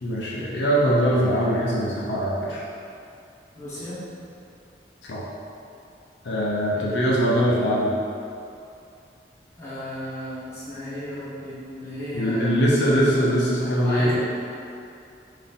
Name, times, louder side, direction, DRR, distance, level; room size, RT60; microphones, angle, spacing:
voice 1, 0.0-2.6 5.1-5.3 6.2-7.9 12.1-14.2, equal, 80° left, -5 dB, 0.6 m, -22 dB
voice 2, 3.5-4.0 6.7-6.9 9.6-12.6 13.8-14.2, equal, 15° left, -12 dB, 1.2 m, -34 dB
3.9 x 2.7 x 3.6 m, 2.6 s
head